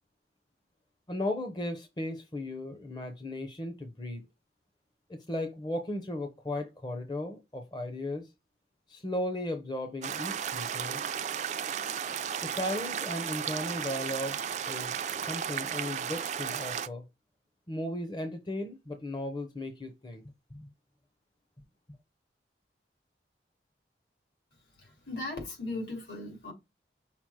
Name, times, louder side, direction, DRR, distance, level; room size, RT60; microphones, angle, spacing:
voice 1, 1.1-4.2 5.1-8.3 8.9-11.0 12.4-15.0 15.2-17.1 17.7-20.2 20.5-20.7, left 1 dB, 25° left, 0.6 m, -36 dB
sound 1, 10.0-16.9, right 8 dB, 40° right, 0.3 m, -34 dB
voice 2, 25.1-26.5, left 2 dB, 70° left, 2.3 m, -37 dB
5.7 x 2.0 x 4.6 m
head